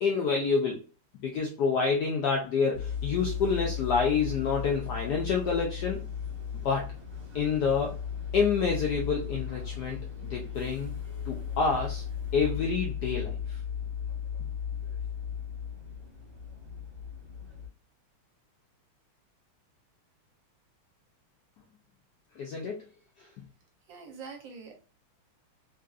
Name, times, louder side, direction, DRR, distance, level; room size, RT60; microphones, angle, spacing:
voice 1, 0.0-0.8 1.2-6.0 6.6-6.9 7.3-8.0 8.3-11.0 11.3-12.0 12.3-13.6 22.4-22.8 23.2-23.3, left 5 dB, 85° left, 0 dB, 0.9 m, -28 dB
sound 1, 2.7-17.7, left 7 dB, 40° right, 1.0 m, -36 dB
voice 2, 23.9-24.7, right 5 dB, 70° right, 2 dB, 1.3 m, -44 dB
3.7 x 2.6 x 2.4 m, 0.35 s
omnidirectional pair, 2.4 m